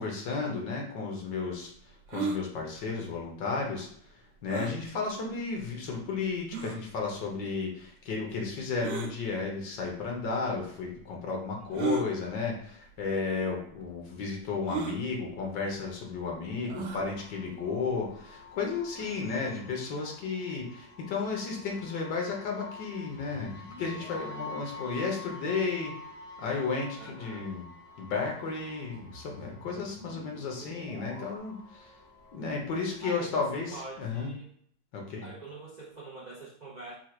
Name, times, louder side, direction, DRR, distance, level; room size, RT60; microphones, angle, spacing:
voice 1, 0.0-1.7 2.1-3.9 4.4-23.5 23.8-25.9 26.4-27.6 28.0-31.9 32.3-34.3 34.9-35.3, left 4 dB, 80° left, 0 dB, 1.7 m, -33 dB
sound 1, 2.1-2.4 4.5-4.8 5.6-5.7 6.5-6.8 8.8-9.1 10.2-10.3 11.7-12.1 13.0-13.1 13.4-13.5 14.7-15.0 16.7-17.0, right 4 dB, 90° right, 1.4 m, -33 dB
sound 2, 16.8-34.2, left 3 dB, 45° left, 1.4 m, -49 dB
sound 3, 18.9-20.3 23.0-25.7 28.9-31.4, left 1 dB, 20° left, 1.4 m, -50 dB
voice 2, 19.3-19.7 27.0-27.5 33.0-34.5 35.2-36.9, right 2 dB, 65° right, -5 dB, 0.4 m, -45 dB
4.6 x 2.4 x 4.5 m, 0.64 s
omnidirectional pair, 1.9 m